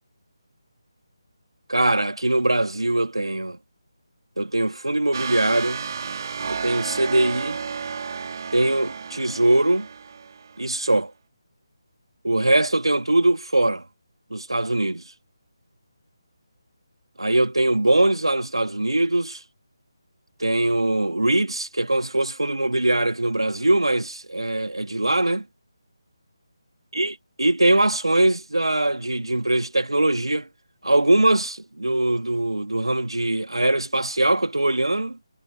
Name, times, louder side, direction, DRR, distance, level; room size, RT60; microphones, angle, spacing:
voice 1, 1.7-3.6 4.4-5.8 6.5-7.6 8.5-9.9 10.6-11.1 12.2-13.8 14.3-15.0 17.2-19.4 20.4-25.4 27.0-30.5 30.8-35.2, right 1 dB, 90° right, 2.6 m, -22 dB
sound 1, 5.1-10.7, right 6 dB, 45° right, 5.3 m, -32 dB
figure-of-eight pair, 155°, 3 cm